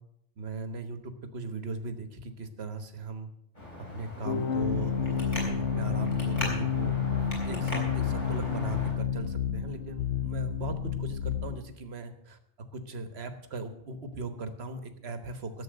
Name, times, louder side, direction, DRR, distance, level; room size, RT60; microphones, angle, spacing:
voice 1, 0.4-3.3 3.9-7.0 7.4-12.4 12.7-15.6, right 3 dB, 65° right, 9 dB, 1.5 m, -38 dB
Traffic noise roadway noise, 3.5-8.9, left 1 dB, 40° left, 4.3 m, -39 dB
sound 1, 4.3-11.6, left 7 dB, 75° left, 1.0 m, -30 dB
11.5 x 7.6 x 7.8 m, 0.77 s
omnidirectional pair, 1.2 m